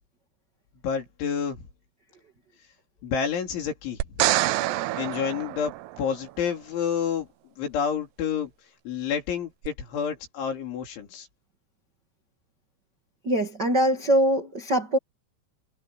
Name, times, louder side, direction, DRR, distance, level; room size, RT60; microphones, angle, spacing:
voice 1, 0.8-1.7 3.0-4.3 5.0-7.3 7.6-8.5 8.9-11.3, left 7 dB, 70° left, 6.1 m, -29 dB
sound 1, 4.0-6.3 9.6-9.7, right 16 dB, 80° right, 2.5 m, -26 dB
voice 2, 13.2-15.0, right 1 dB, 45° right, 1.4 m, -22 dB
omnidirectional pair, 5.6 m